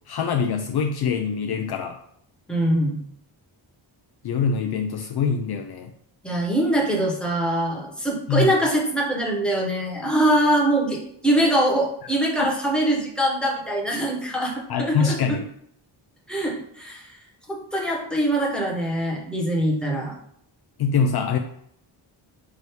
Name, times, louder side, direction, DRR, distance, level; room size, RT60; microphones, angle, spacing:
voice 1, 0.1-2.0 4.2-5.9 8.3-8.5 12.4-12.5 14.7-15.5 20.8-21.4, left 6 dB, 55° left, 5 dB, 0.5 m, -24 dB
voice 2, 2.5-3.0 6.2-15.2 16.3-17.1 17.5-20.2, right 1 dB, ahead, -2 dB, 1.2 m, -23 dB
4.8 x 2.7 x 3.2 m, 0.71 s
cardioid pair, 75°, 46 cm